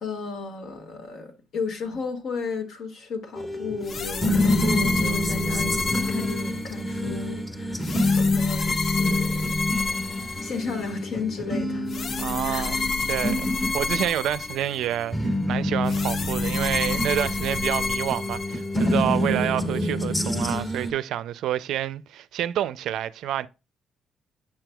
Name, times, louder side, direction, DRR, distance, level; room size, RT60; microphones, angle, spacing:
voice 1, 0.0-7.8 8.1-9.6 10.4-11.9 12.5-12.7, left 5 dB, 75° left, 1.8 m, -34 dB
sound 1, 3.4-20.9, left 1 dB, 15° left, 1.3 m, -27 dB
sound 2, 3.8-7.0 7.8-10.9 11.9-15.0 15.9-19.0, left 3 dB, 50° left, 0.5 m, -30 dB
voice 2, 12.2-12.8 13.1-23.5, right 11 dB, 80° right, 0.4 m, -28 dB
8.5 x 6.0 x 2.3 m
cardioid pair, 90°, 0 cm